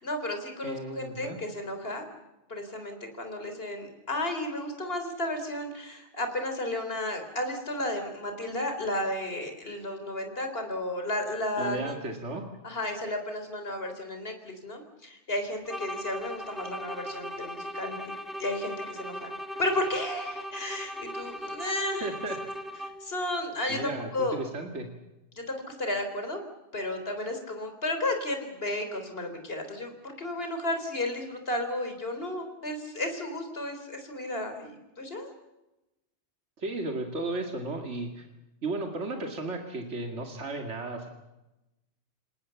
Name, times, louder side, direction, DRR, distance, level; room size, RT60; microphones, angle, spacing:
voice 1, 0.0-2.1 2.5-12.0 12.6-18.1 18.4-22.1 23.0-24.4 25.5-26.4 26.7-35.3, left 1 dB, 55° left, 6 dB, 4.2 m, -33 dB
voice 2, 0.6-1.4 11.6-12.4 22.0-22.4 23.7-24.9 36.6-38.2 38.6-41.1, right 2 dB, 75° right, 3 dB, 2.5 m, -34 dB
sound 1, 15.7-23.2, equal, ahead, 2.2 m, -38 dB
29.0 x 18.0 x 7.1 m, 0.98 s
omnidirectional pair, 1.2 m